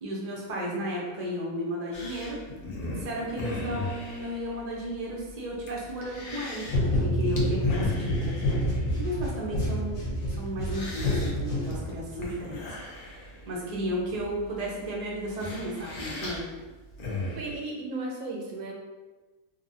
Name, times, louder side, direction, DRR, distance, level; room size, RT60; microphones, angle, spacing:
voice 1, 0.0-2.4 2.9-8.4 9.0-12.6 13.2-16.5, equal, 50° right, -4 dB, 0.4 m, -34 dB
sound 1, 1.9-17.6, left 2 dB, 85° left, 0.4 m, -39 dB
sound 2, 6.7-12.2, left 1 dB, 65° left, 1.0 m, -28 dB
voice 2, 17.3-18.7, right 2 dB, 75° right, -1 dB, 1.0 m, -35 dB
3.1 x 2.2 x 2.6 m, 1.2 s
omnidirectional pair, 1.6 m